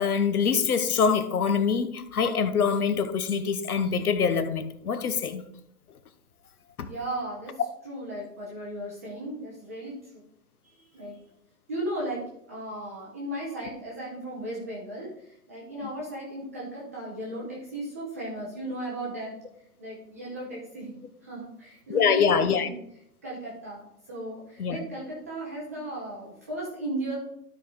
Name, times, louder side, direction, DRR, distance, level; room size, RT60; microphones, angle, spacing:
voice 1, 0.0-5.4 6.8-6.9 21.9-22.7 24.6-24.8, left 6 dB, 60° left, 11 dB, 1.0 m, -24 dB
voice 2, 6.9-10.2 10.6-11.2 11.7-12.2 12.5-19.4 19.8-20.9 21.2-22.8 23.2-27.2, right 1 dB, 10° right, -5 dB, 0.6 m, -36 dB
12.0 x 4.8 x 3.8 m, 0.76 s
hypercardioid pair, 155°, 49 cm